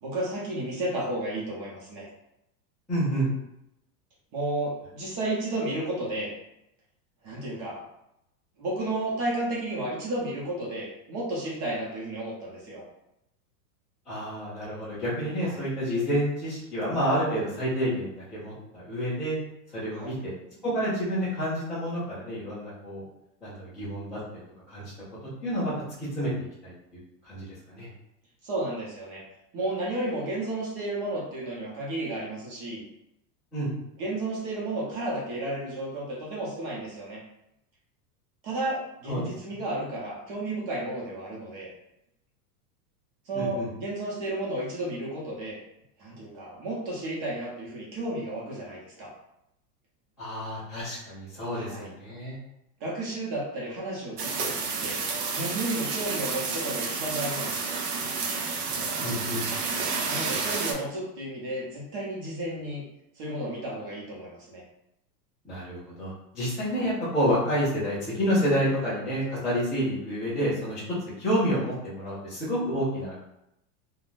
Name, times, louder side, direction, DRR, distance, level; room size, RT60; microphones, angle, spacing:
voice 1, 0.0-2.1 4.3-6.3 7.2-7.8 8.6-12.8 15.4-15.6 19.9-20.1 28.4-29.2 29.5-32.8 34.0-37.2 38.4-41.7 43.3-45.6 46.0-49.1 51.5-51.9 52.8-55.0 55.3-57.8 60.1-62.8 63.2-64.6 66.7-66.9, right 1 dB, 35° right, -4 dB, 0.8 m, -32 dB
voice 2, 2.9-3.3 14.1-19.3 19.7-20.3 20.6-23.0 23.4-24.4 24.7-24.9 25.4-25.7 26.0-26.3 26.6-26.7 27.2-27.9 33.5-33.7 39.1-39.3 43.3-43.7 50.2-52.4 59.0-59.5 65.4-73.3, equal, ahead, -19 dB, 0.4 m, -29 dB
sound 1, 54.2-60.7, right 4 dB, 85° right, 0.9 m, -30 dB
3.6 x 2.3 x 2.5 m, 0.83 s
supercardioid pair, 170°, 47 cm